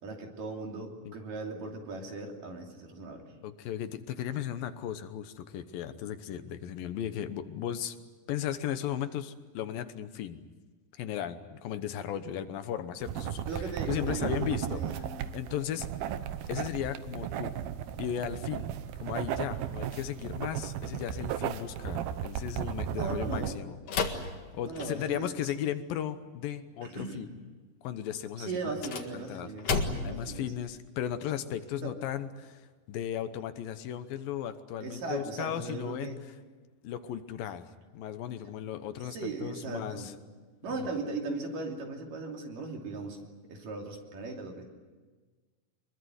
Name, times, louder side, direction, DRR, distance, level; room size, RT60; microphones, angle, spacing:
voice 1, 0.0-3.3 13.5-15.4 22.9-23.6 24.1-24.2 24.6-25.5 26.8-27.3 28.4-30.5 31.8-32.0 34.8-36.2 39.1-40.1 40.6-43.2 43.5-44.6, right 3 dB, 65° right, 2 dB, 4.5 m, -38 dB
voice 2, 3.4-8.0 8.3-10.4 11.0-15.0 15.3-15.9 16.5-17.6 18.0-18.7 19.0-27.3 27.8-28.7 29.1-36.2 36.8-40.1 40.7-40.9, left 10 dB, 75° left, 10 dB, 2.8 m, -36 dB
sound 1, 13.0-23.5, right 10 dB, 85° right, 2.9 m, -35 dB
sound 2, 23.9-25.3 28.6-30.3, left 4 dB, 50° left, 2.6 m, -33 dB
24.0 x 22.5 x 9.5 m, 1.4 s
omnidirectional pair, 4.1 m